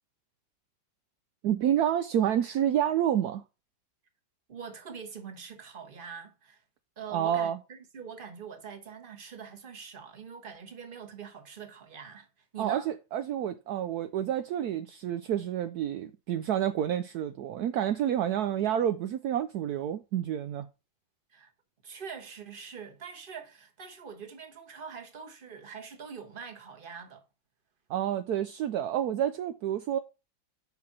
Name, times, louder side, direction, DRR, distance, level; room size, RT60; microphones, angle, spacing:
voice 1, 1.4-3.4 7.1-7.6 12.6-20.7 27.9-30.0, right 10 dB, 70° right, 0.9 m, -29 dB
voice 2, 4.5-6.6 7.0-12.9 21.3-21.5 21.8-27.2, right 6 dB, 30° right, 1.3 m, -44 dB
5.7 x 5.7 x 5.9 m
omnidirectional pair, 2.1 m